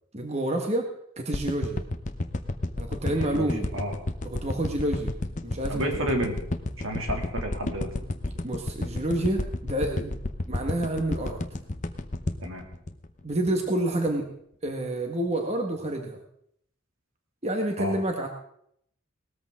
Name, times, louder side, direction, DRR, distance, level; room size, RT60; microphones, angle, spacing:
voice 1, 0.1-0.9 1.2-1.8 2.8-3.7 4.2-5.1 5.4-6.0 8.4-10.1 10.5-11.4 13.2-14.3 14.6-16.2 17.4-18.3, right 1 dB, 30° right, 3 dB, 1.6 m, -28 dB
sound 1, 1.3-13.6 14.1-14.2, left 2 dB, 35° left, 0.8 m, -31 dB
voice 2, 3.1-4.0 5.7-6.4 6.8-7.9 12.4-12.7 17.8-17.9, equal, 75° right, 3 dB, 2.7 m, -31 dB
18.5 x 14.0 x 3.7 m, 0.69 s
head